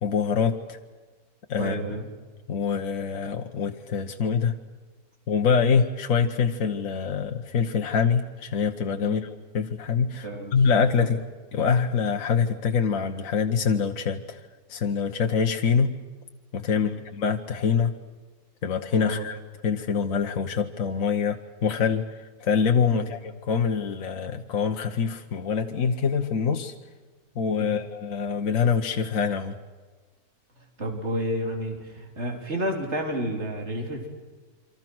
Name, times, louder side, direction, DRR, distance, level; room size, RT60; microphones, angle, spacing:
voice 1, 0.0-0.8 1.5-1.9 2.5-4.6 5.3-11.2 11.5-14.4 14.7-16.0 16.5-17.9 18.6-19.4 19.6-26.7 27.3-29.6, left 6 dB, 65° left, 4 dB, 1.5 m, -25 dB
voice 2, 1.6-2.1 9.0-9.2 10.2-10.6 16.7-17.0 19.0-19.3 22.9-23.1 27.6-27.8 30.6-34.1, right 1 dB, 45° right, 2 dB, 3.8 m, -31 dB
28.5 x 24.5 x 6.2 m, 1.3 s
omnidirectional pair, 1.6 m